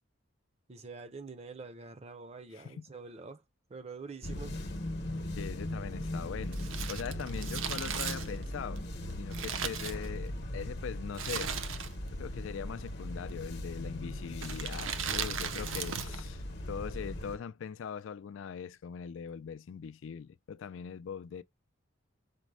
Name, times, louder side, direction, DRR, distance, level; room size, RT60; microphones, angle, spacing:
voice 1, 0.7-3.4 3.7-4.6 15.2-16.1, right 4 dB, 30° right, 0.5 m, -46 dB
voice 2, 2.5-2.8 5.3-8.8 9.2-11.6 12.1-21.4, left 7 dB, 70° left, 0.3 m, -41 dB
sound 1, 4.2-17.4, left 1 dB, 55° left, 0.9 m, -39 dB
Crumpling crinkling, 6.5-10.5 11.1-12.2 12.4-12.5 13.3-13.7 14.3-16.3 16.5-16.6, right 7 dB, 80° right, 0.7 m, -37 dB
5.2 x 2.1 x 4.6 m
head